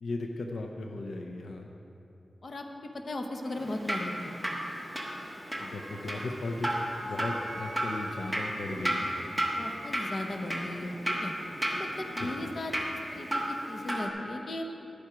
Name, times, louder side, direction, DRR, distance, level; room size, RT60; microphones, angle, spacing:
voice 1, 0.0-1.7 5.6-6.7 7.0-9.2 12.2-12.5, left 2 dB, 85° left, 3 dB, 0.6 m, -37 dB
voice 2, 2.4-4.5 9.6-11.3 11.7-12.7 13.1-14.6, left 1 dB, 50° left, 3 dB, 0.8 m, -37 dB
Drip, 3.5-14.1, equal, ahead, 1.2 m, -34 dB
Wind instrument woodwind instrument, 5.8-9.9, right 3 dB, 75° right, 0.6 m, -49 dB
11.5 x 7.4 x 4.9 m, 3.0 s
wide cardioid pair, 110°, 0 cm